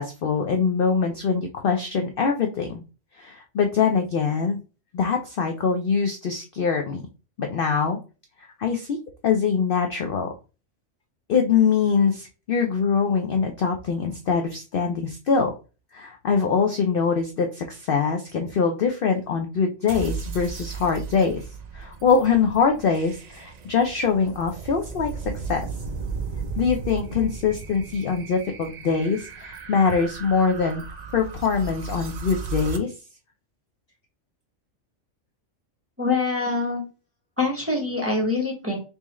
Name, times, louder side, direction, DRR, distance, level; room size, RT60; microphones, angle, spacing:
voice 1, 0.0-2.8 3.2-4.6 4.9-7.1 7.4-8.0 8.4-10.3 11.3-15.5 15.9-21.4 21.7-25.7 26.6-30.8 31.1-32.9, left 5 dB, 60° left, 4 dB, 0.6 m, -23 dB
sound 1, 19.9-32.8, right 5 dB, 90° right, 0.3 m, -35 dB
voice 2, 36.0-36.8 37.4-38.8, left 3 dB, 10° right, -2 dB, 0.9 m, -24 dB
3.5 x 3.2 x 3.0 m, 0.33 s
omnidirectional pair, 1.4 m